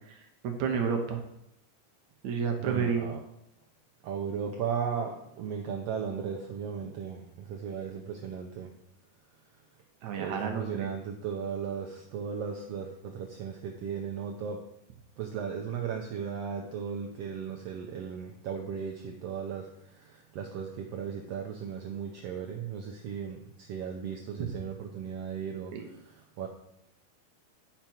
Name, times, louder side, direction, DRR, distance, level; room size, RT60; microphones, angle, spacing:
voice 1, 0.1-1.2 2.2-3.1 10.0-10.9 24.4-24.5 25.7-25.9, right 6 dB, 70° right, 4 dB, 2.1 m, -31 dB
voice 2, 2.6-3.2 4.0-8.7 10.1-14.6 15.2-25.7 26.0-26.5, right 7 dB, 85° right, 2 dB, 1.3 m, -36 dB
10.0 x 5.9 x 4.5 m, 0.79 s
omnidirectional pair, 3.8 m